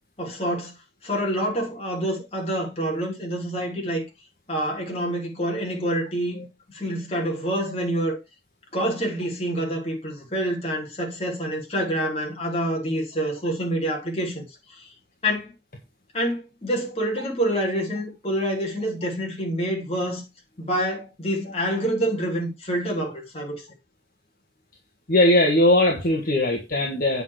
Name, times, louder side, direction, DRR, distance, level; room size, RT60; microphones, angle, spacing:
voice 1, 0.2-0.7 1.0-4.0 4.5-8.2 8.7-14.4 14.7-14.9 15.2-15.5 16.1-20.2 20.6-23.6, right 1 dB, 35° left, 3.6 m, -27 dB
voice 2, 25.1-27.2, left 1 dB, 50° left, 1.7 m, -19 dB
9.0 x 6.0 x 4.8 m
head